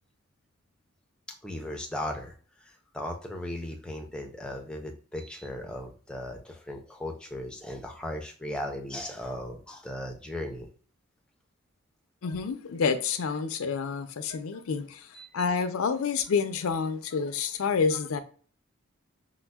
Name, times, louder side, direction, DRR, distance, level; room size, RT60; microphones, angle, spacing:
voice 1, 1.4-2.3 2.9-10.7 15.1-15.4, left 1 dB, 5° left, 0.4 m, -37 dB
voice 2, 12.2-15.1 15.3-18.2, left 5 dB, 85° left, 0.4 m, -28 dB
5.1 x 2.0 x 2.2 m
head